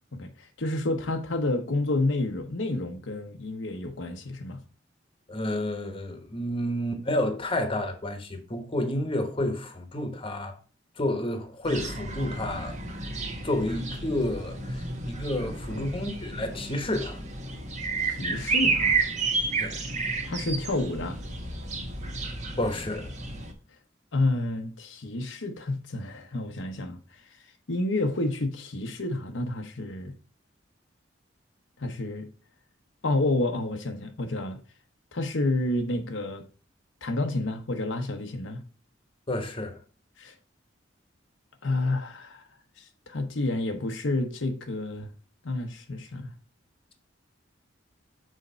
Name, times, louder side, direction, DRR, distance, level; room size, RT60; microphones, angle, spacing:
voice 1, 0.1-4.6 15.7-15.9 18.0-19.0 20.2-21.2 24.1-27.0 27.7-30.2 31.8-32.3 33.0-34.6 35.1-36.4 37.0-38.6 40.2-40.3 41.6-42.5 42.8-45.1 45.4-46.3, left 2 dB, 85° left, 0.9 m, -29 dB
voice 2, 5.3-10.5 11.0-12.8 13.4-17.2 19.6-19.8 22.6-23.1 39.3-39.8, left 1 dB, 30° left, 1.1 m, -30 dB
sound 1, 11.6-23.5, right 3 dB, 40° right, 1.2 m, -31 dB
6.4 x 4.4 x 4.3 m
head